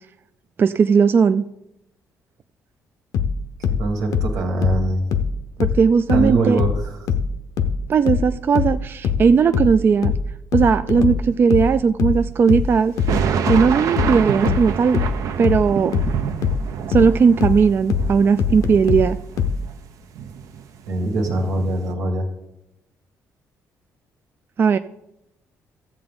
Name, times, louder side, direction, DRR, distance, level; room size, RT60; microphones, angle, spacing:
voice 1, 0.6-1.4 5.6-6.6 7.9-10.1 10.5-12.9 13.5-15.0 15.4-15.9 16.9-19.2 24.6-24.8, right 6 dB, 40° right, 10 dB, 0.3 m, -17 dB
sound 1, 3.1-6.3 6.6-19.6, left 6 dB, 80° left, 0.7 m, -22 dB
voice 2, 3.8-5.1 6.1-6.9 10.9-11.0 20.9-22.3, right 2 dB, 90° right, 2 dB, 1.9 m, -22 dB
sound 2, 13.0-19.7 20.1-20.9 21.3-21.9, right 7 dB, 70° right, 0.6 m, -27 dB
13.5 x 7.8 x 3.8 m, 0.85 s
cardioid pair, 120°, 6 cm